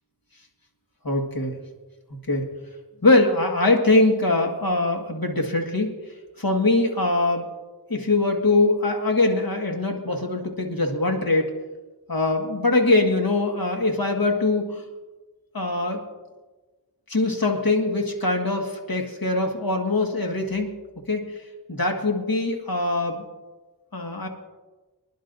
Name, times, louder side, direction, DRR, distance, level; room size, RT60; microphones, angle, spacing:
voice 1, 1.0-1.5 2.3-2.5 3.0-6.0 6.4-7.5 7.9-11.5 12.1-14.8 15.5-16.0 17.1-20.7 21.1-21.3 21.7-23.2 23.9-24.3, left 2 dB, 60° left, 2 dB, 1.9 m, -22 dB
24.5 x 11.0 x 2.7 m, 1.2 s
wide cardioid pair, 45°, 39 cm